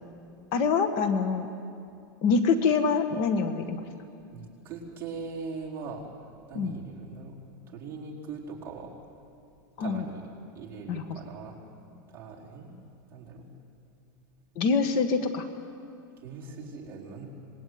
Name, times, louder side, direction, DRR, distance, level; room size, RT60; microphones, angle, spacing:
voice 1, 0.5-1.5 2.2-3.8 6.5-6.7 9.8-10.0 10.9-11.0 14.6-15.5, left 5 dB, 40° left, 9 dB, 1.4 m, -25 dB
voice 2, 4.3-6.0 6.5-7.4 7.7-8.9 9.8-10.3 10.5-11.5 12.1-12.7 13.1-13.5 16.2-17.3, right 4 dB, 20° right, -5 dB, 4.3 m, -40 dB
27.0 x 20.0 x 9.4 m, 2.5 s
supercardioid pair, 170°, 11 cm